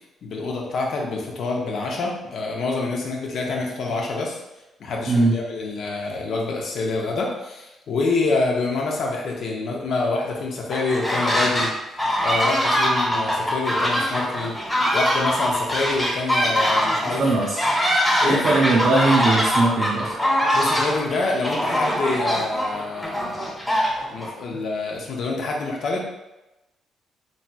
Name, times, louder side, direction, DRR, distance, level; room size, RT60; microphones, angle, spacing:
voice 1, 0.2-4.4 4.8-11.7 12.2-14.6 14.9-17.2 18.2-18.4 20.5-23.5 24.1-26.0, left 3 dB, 65° left, -1 dB, 0.6 m, -26 dB
voice 2, 5.1-5.4 17.2-17.7 18.2-20.1, right 2 dB, 55° right, -4 dB, 0.5 m, -20 dB
sound 1, 10.7-11.7 12.0-24.3, equal, 10° left, 1.2 m, -22 dB
3.1 x 2.8 x 2.2 m, 0.98 s
cardioid pair, 90°, 0 cm